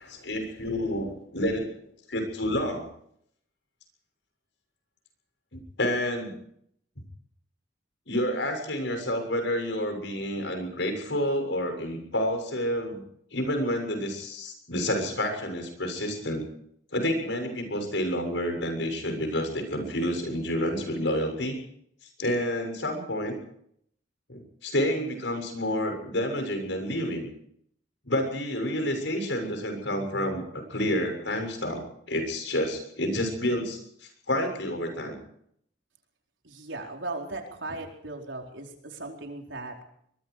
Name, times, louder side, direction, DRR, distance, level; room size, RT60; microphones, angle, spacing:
voice 1, 0.0-1.7 2.1-2.9 5.5-6.4 8.1-13.0 13.3-16.4 16.9-21.6 22.2-23.4 24.3-27.3 28.1-35.2, equal, 70° left, 5 dB, 7.0 m, -29 dB
voice 2, 36.4-39.8, right 2 dB, 80° right, 2 dB, 4.5 m, -37 dB
23.0 x 22.5 x 4.9 m, 0.69 s
head